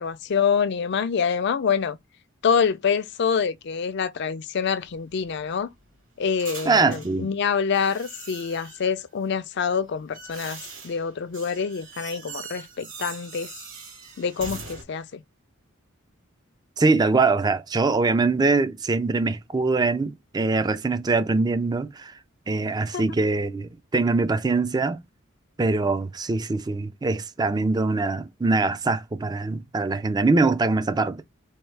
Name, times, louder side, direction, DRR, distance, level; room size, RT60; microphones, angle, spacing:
voice 1, 0.0-2.0 2.4-5.7 6.2-13.5 14.2-15.2 22.9-23.0, left 6 dB, 55° left, 0.4 m, -26 dB
sound 1, 4.8-7.2 7.7-8.9 9.7-14.8, right 4 dB, 70° right, 2.8 m, -42 dB
voice 2, 6.7-7.3 16.8-22.1 22.5-25.0 25.6-31.2, right 3 dB, 20° right, 0.4 m, -23 dB
4.4 x 2.3 x 3.2 m
head